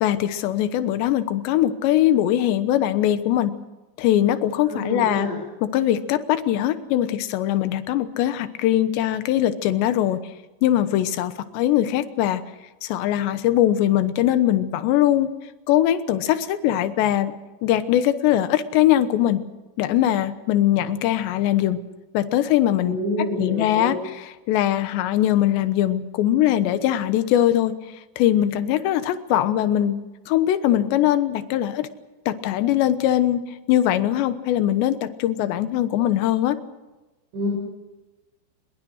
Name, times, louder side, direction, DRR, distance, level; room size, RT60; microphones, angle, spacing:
voice 1, 0.0-3.5 4.0-5.3 5.7-10.2 10.6-12.4 12.8-15.3 15.7-17.4 17.6-19.4 19.8-21.8 22.1-23.0 23.4-24.0 24.5-27.7 28.2-30.0 30.3-31.9 32.3-33.4 33.7-36.6, left 12 dB, 80° left, 11 dB, 3.3 m, -21 dB
voice 2, 4.7-5.4 22.8-23.9 37.3-37.5, equal, 85° right, -3 dB, 9.8 m, -27 dB
23.0 x 22.0 x 6.4 m, 1.1 s
omnidirectional pair, 5.0 m